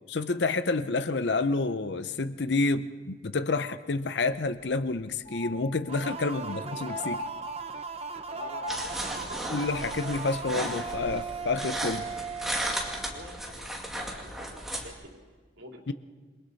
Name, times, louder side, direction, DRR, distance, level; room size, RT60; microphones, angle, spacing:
voice 1, 0.1-7.2 9.5-12.1 15.9-16.0, left 3 dB, 60° left, 12 dB, 0.7 m, -29 dB
sound 1, 4.3-4.4 4.7-4.8 5.3-6.2 6.9-7.9 8.4-9.3 10.6-10.7, left 2 dB, 30° left, 1.4 m, -40 dB
sound 2, 5.9-13.5, right 5 dB, 35° right, 0.9 m, -38 dB
voice 2, 6.2-6.8 8.3-9.6 13.0-15.3 15.6-15.8, right 1 dB, 85° right, 0 dB, 3.4 m, -48 dB
sound 3, 8.7-14.9, right 1 dB, ahead, 2.1 m, -35 dB
28.0 x 22.0 x 4.1 m, 1.4 s
head